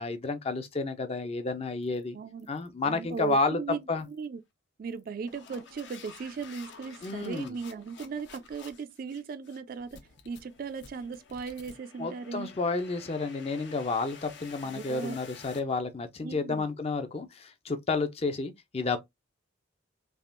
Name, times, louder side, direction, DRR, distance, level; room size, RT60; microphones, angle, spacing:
voice 1, 0.0-2.2 2.5-4.1 7.0-7.6 12.0-19.0, left 3 dB, 30° left, 0.4 m, -31 dB
sound 1, 1.8-2.0 2.4-2.7 3.1-3.5 4.0-4.3 4.9-15.6, left 5 dB, 70° left, 0.7 m, -51 dB
voice 2, 2.1-2.5 2.8-4.4 4.8-12.5 14.6-15.2 16.2-16.7, right 5 dB, 50° right, 0.3 m, -38 dB
3.4 x 2.4 x 2.4 m
head